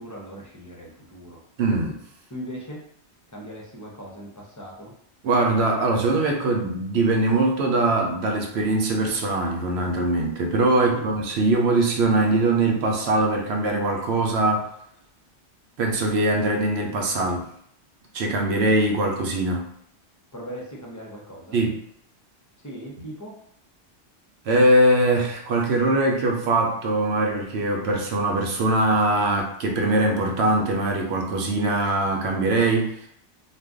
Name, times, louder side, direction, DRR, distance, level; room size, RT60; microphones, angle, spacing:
voice 1, 0.0-1.4 2.3-2.8 3.3-4.9 10.7-11.1 20.3-21.6 22.6-23.4, equal, 25° left, -3 dB, 0.4 m, -39 dB
voice 2, 1.6-2.0 5.2-14.7 15.8-17.5 18.1-19.7 21.5-21.8 24.5-33.1, right 2 dB, 75° right, 1 dB, 0.9 m, -22 dB
2.5 x 2.2 x 3.5 m, 0.68 s
omnidirectional pair, 1.2 m